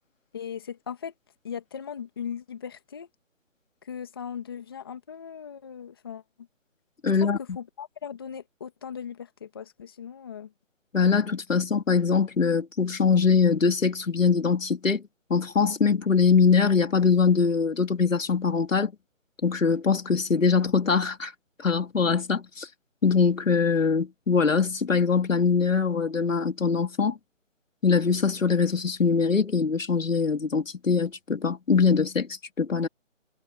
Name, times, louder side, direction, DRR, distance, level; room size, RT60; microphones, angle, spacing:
voice 1, 0.3-1.1 1.4-3.1 3.8-6.2 7.2-10.5, left 7 dB, 20° left, 2.0 m, -38 dB
voice 2, 7.0-7.4 10.9-15.0 15.3-18.9 19.4-21.3 21.6-22.7 23.0-27.1 27.8-32.9, left 5 dB, 80° left, 3.6 m, -23 dB
hypercardioid pair, 180°, 39 cm